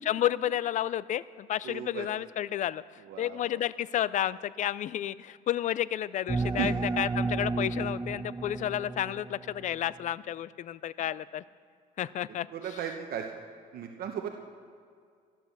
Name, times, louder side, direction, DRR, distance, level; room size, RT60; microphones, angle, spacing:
voice 1, 0.1-11.4 12.0-12.5, left 11 dB, 45° left, 18 dB, 0.4 m, -31 dB
voice 2, 1.6-2.1 3.1-3.6 6.6-6.7 8.7-8.8 12.5-13.3 13.7-14.3, right 9 dB, 65° right, 3 dB, 1.1 m, -36 dB
sound 1, 6.3-9.8, right 3 dB, 15° right, 0.4 m, -32 dB
14.0 x 10.5 x 6.6 m, 2.2 s
cardioid pair, 110°, 17 cm